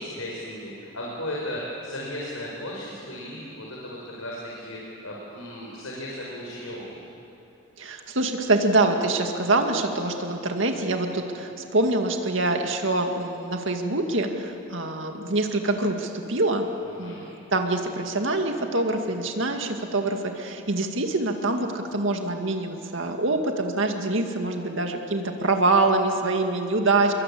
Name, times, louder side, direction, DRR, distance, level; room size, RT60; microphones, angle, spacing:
voice 1, 0.0-6.8 17.0-17.3, left 1 dB, 80° left, -3 dB, 5.4 m, -35 dB
voice 2, 7.8-16.7 17.0-27.1, right 2 dB, 60° right, 4 dB, 2.2 m, -25 dB
30.0 x 23.0 x 8.6 m, 3.0 s
head